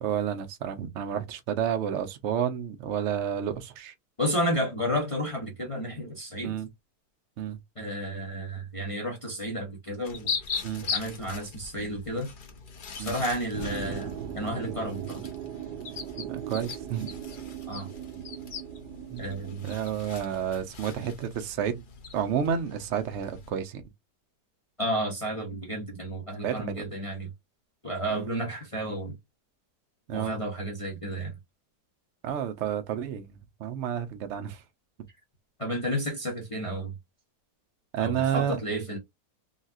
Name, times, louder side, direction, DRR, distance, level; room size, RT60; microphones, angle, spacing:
voice 1, 0.0-3.9 6.4-6.7 7.4-7.6 10.6-10.9 13.0-13.2 16.2-17.1 19.1-19.2 19.6-21.8 22.1-23.8 26.4-26.6 28.1-28.3 30.1-30.4 32.2-34.6 37.9-38.6, right 9 dB, 60° right, 0.7 m, -30 dB
voice 2, 4.2-6.6 7.8-10.3 10.8-12.3 13.0-15.3 17.7-17.9 19.2-19.7 20.9-21.0 24.8-27.3 27.8-29.1 30.1-31.3 35.6-36.9 38.0-39.0, equal, 30° left, 0.6 m, -32 dB
sound 1, 10.0-23.5, left 5 dB, 70° left, 0.4 m, -40 dB
sound 2, 13.5-19.9, right 10 dB, 80° right, 1.2 m, -39 dB
3.9 x 2.3 x 2.5 m
omnidirectional pair, 1.8 m